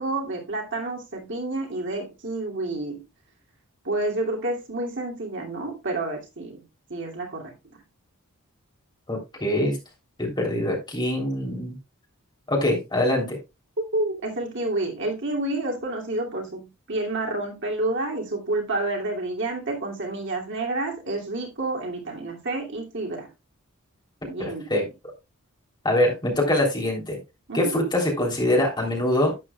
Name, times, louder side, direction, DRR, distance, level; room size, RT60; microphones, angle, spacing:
voice 1, 0.0-3.0 3.8-6.6 6.9-7.5 13.8-23.3 24.2-24.8 27.5-27.8, right 2 dB, 55° right, 2.5 m, -29 dB
voice 2, 9.1-9.8 10.2-11.8 12.5-13.4 24.4-24.8 25.9-27.2 27.5-29.4, left 1 dB, 20° left, 3.3 m, -24 dB
11.5 x 8.8 x 2.3 m
head